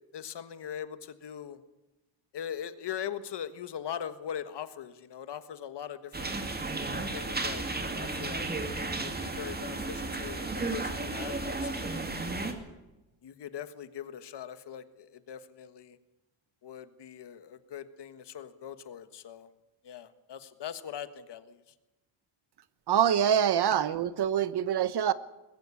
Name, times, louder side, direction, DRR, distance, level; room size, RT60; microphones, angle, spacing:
voice 1, 0.1-1.6 2.3-6.4 6.9-8.5 9.0-11.9 13.2-16.0 16.6-19.5 19.8-21.6, left 9 dB, 55° left, 12 dB, 1.5 m, -41 dB
sound 1, 6.1-12.5, right 3 dB, 20° right, 2.2 m, -34 dB
voice 2, 22.9-25.1, right 9 dB, 50° right, 15 dB, 1.0 m, -25 dB
20.5 x 15.5 x 8.6 m, 1.0 s
cardioid pair, 150°, 50 cm